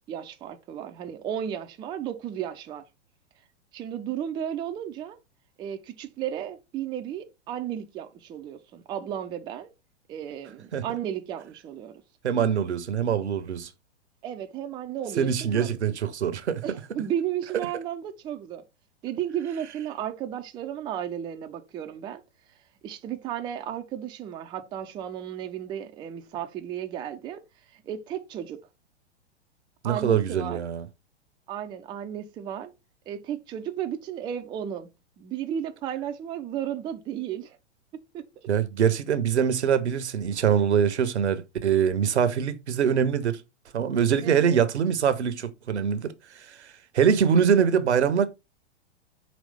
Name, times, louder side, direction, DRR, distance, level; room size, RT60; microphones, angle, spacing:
voice 1, 0.1-2.8 3.7-5.2 5.6-9.7 10.1-12.0 14.2-15.8 16.6-18.6 19.0-22.2 22.8-27.4 27.7-28.7 29.8-30.6 31.5-32.7 33.1-34.9 35.2-37.6 38.1-38.2 44.2-44.7, right 10 dB, 15° right, 0.4 m, -34 dB
voice 2, 12.2-13.7 15.2-16.8 29.8-30.9 38.5-43.4 43.7-48.3, right 7 dB, 75° right, 0.8 m, -24 dB
5.2 x 3.1 x 3.2 m
figure-of-eight pair, 100°, 34 cm